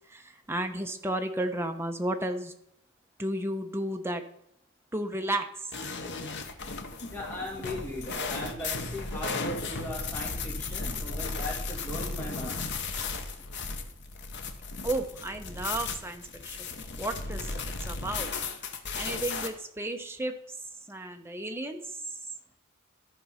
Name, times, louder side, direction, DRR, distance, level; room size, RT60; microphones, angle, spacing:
voice 1, 0.1-2.5 3.2-4.2 4.9-5.7 14.8-16.7 17.0-18.3 19.0-20.3 20.9-22.0, right 1 dB, 10° right, 5 dB, 0.9 m, -33 dB
sound 1, 5.7-19.5, left 4 dB, 55° left, 1.1 m, -35 dB
voice 2, 7.1-12.7, left 1 dB, 10° left, -3 dB, 2.6 m, -38 dB
13.5 x 4.7 x 5.6 m, 0.77 s
head